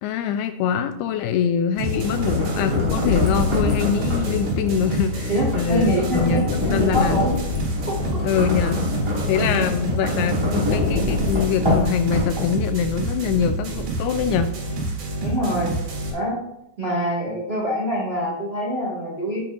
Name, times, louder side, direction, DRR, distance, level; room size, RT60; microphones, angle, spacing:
voice 1, 0.0-7.2 8.2-8.8 9.3-14.5, left 7 dB, 85° left, 9 dB, 2.3 m, -24 dB
sound 1, 1.7-12.7, left 2 dB, 30° right, 0.5 m, -25 dB
sound 2, 1.8-16.1, right 2 dB, 55° right, 3.1 m, -28 dB
voice 2, 5.3-7.3 7.9-8.2 9.4-9.7 15.2-15.7 16.1-16.3 16.8-19.4, equal, 85° right, -4 dB, 0.5 m, -25 dB
9.0 x 8.8 x 2.6 m, 0.81 s
omnidirectional pair, 4.8 m